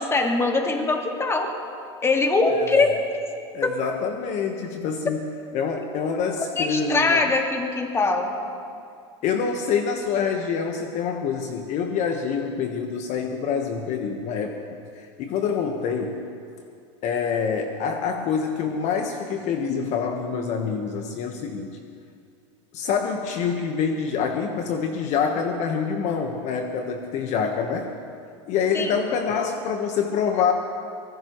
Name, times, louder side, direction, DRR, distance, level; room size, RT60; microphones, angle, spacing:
voice 1, 0.0-1.5 2.0-2.9 3.6-3.7 6.4-8.3 28.7-28.9, left 3 dB, 15° left, 3 dB, 2.0 m, -22 dB
voice 2, 3.5-5.2 5.5-7.3 9.2-16.2 17.0-21.8 22.7-27.9 28.5-30.5, left 6 dB, 45° left, 4 dB, 1.3 m, -26 dB
23.5 x 19.0 x 3.2 m, 2.4 s
hypercardioid pair, 110°, 16 cm